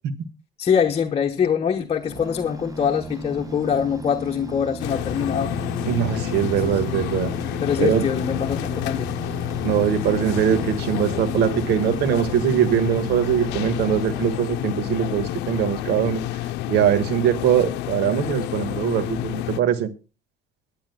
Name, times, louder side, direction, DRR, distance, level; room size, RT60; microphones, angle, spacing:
voice 1, 0.6-5.5 6.5-6.8 7.4-9.1, left 7 dB, 35° left, 1.2 m, -24 dB
sound 1, 2.0-14.9, right 2 dB, 20° right, 1.7 m, -35 dB
sound 2, 4.8-19.6, left 15 dB, 90° left, 0.6 m, -29 dB
voice 2, 5.8-7.3 7.8-8.0 9.6-16.2 16.7-19.9, right 9 dB, 80° right, 1.6 m, -22 dB
23.5 x 10.0 x 2.2 m
cardioid pair, 110°, 17 cm